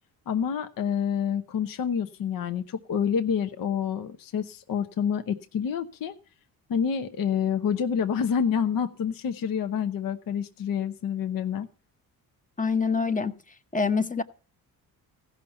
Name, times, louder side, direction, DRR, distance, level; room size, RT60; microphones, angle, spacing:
voice 1, 0.3-6.1 6.7-11.7, left 7 dB, 60° left, 8 dB, 0.9 m, -28 dB
voice 2, 12.6-13.3 13.7-14.2, left 5 dB, 20° left, 10 dB, 0.9 m, -25 dB
15.0 x 5.7 x 6.8 m, 0.38 s
cardioid pair, 75°, 38 cm